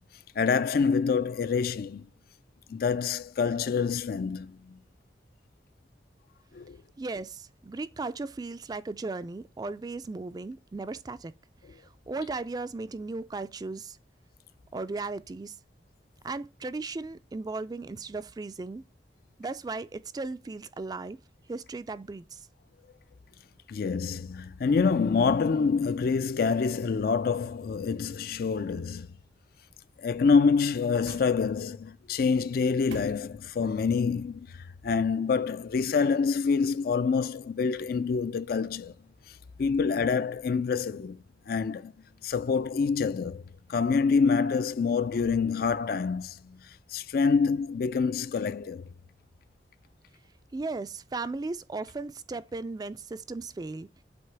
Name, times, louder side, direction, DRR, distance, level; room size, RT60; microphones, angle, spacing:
voice 1, 0.4-2.1 2.7-4.8 6.5-6.8 23.7-29.1 30.0-38.9 39.6-41.9 42.2-43.4 43.7-46.6 46.9-48.8, left 5 dB, 55° left, 0.4 m, -26 dB
voice 2, 7.0-11.3 11.7-14.0 14.7-15.6 16.2-18.8 19.4-21.2 21.5-22.5 50.5-53.9, right 3 dB, 20° right, 0.3 m, -36 dB
sound 1, 30.2-31.9 32.4-33.7 34.1-34.2, right 4 dB, 80° right, 0.6 m, -50 dB
7.9 x 2.9 x 4.5 m
head